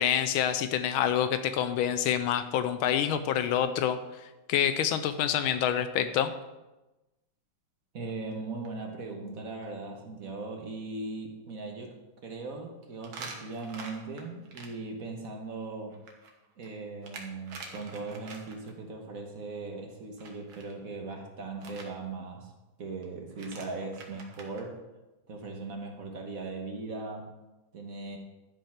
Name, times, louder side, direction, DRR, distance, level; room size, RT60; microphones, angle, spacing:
voice 1, 0.0-6.3, left 9 dB, 85° left, 11 dB, 1.4 m, -27 dB
voice 2, 7.9-12.0 12.2-16.0 16.6-22.5 22.8-24.8 25.3-27.3 27.7-28.2, right 3 dB, 50° right, 2 dB, 1.5 m, -39 dB
sound 1, 8.1-8.3 8.7-8.8 9.3-9.4 9.6-9.7 13.0-14.7 15.9-18.7 20.2-20.7 21.6-21.9 23.0-23.1 23.3-24.6, right 4 dB, 80° right, 2.2 m, -46 dB
12.0 x 5.4 x 5.8 m, 1.0 s
omnidirectional pair, 2.2 m